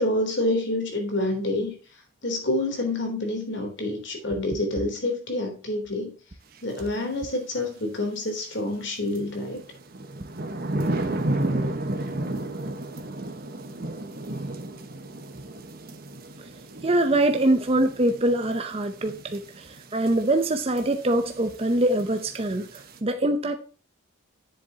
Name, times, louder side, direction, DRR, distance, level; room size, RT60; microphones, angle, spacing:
voice 1, 0.0-1.7 2.2-6.2 6.6-9.6, left 1 dB, 60° left, 3.5 m, -27 dB
sound 1, 6.8-6.9 9.2-23.0, right 1 dB, 50° right, 1.3 m, -33 dB
voice 2, 16.8-23.6, right 1 dB, 30° right, 0.7 m, -24 dB
10.5 x 7.6 x 2.9 m
head